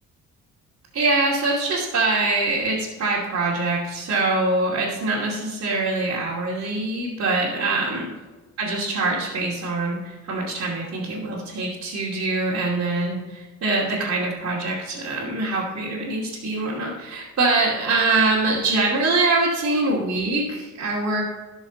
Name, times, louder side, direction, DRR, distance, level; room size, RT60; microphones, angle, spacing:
voice 1, 0.9-8.1 8.6-21.2, right 2 dB, 55° right, -8 dB, 2.6 m, -24 dB
17.0 x 6.4 x 4.0 m, 1.2 s
cardioid pair, 90°, 30 cm